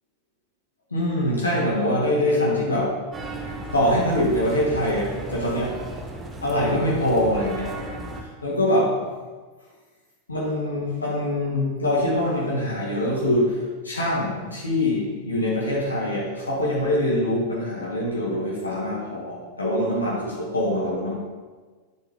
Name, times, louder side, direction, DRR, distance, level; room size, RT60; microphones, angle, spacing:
voice 1, 0.9-3.0 3.7-5.8 6.4-7.8 8.1-9.0 10.3-21.1, left 1 dB, 80° left, -5 dB, 2.4 m, -24 dB
sound 1, 3.1-8.2, right 2 dB, 20° right, 1.3 m, -36 dB
10.5 x 7.9 x 3.9 m, 1.4 s
figure-of-eight pair, 90°, 0 cm